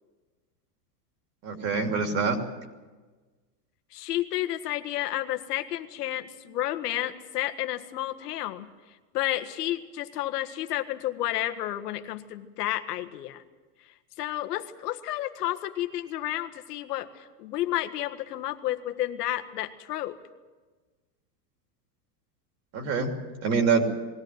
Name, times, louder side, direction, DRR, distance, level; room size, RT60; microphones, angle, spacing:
voice 1, 1.4-2.4 22.7-23.1 23.4-23.8, right 5 dB, 30° right, 4 dB, 3.0 m, -25 dB
voice 2, 3.9-8.7 9.1-13.4 14.2-20.1, left 14 dB, 75° left, 7 dB, 1.6 m, -31 dB
21.0 x 16.0 x 9.4 m, 1.3 s
supercardioid pair, 160°, 48 cm